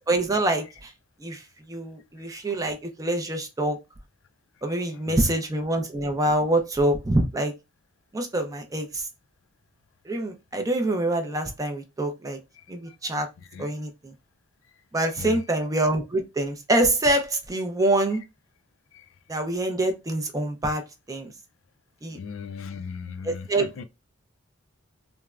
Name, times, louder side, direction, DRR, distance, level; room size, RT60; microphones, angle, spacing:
voice 1, 0.1-0.9 1.2-1.4 1.7-3.8 4.6-7.5 8.1-9.0 10.1-12.4 12.7-13.3 13.6-13.9 14.9-18.2 19.3-20.8 21.1-21.3 22.0-22.2 23.2-23.8, right 1 dB, 15° right, 0.4 m, -25 dB
voice 2, 4.7-5.3 12.5-13.0 13.4-13.8 15.1-15.6 18.9-19.1 22.1-23.8, left 6 dB, 65° left, 0.4 m, -39 dB
3.4 x 2.0 x 2.3 m
head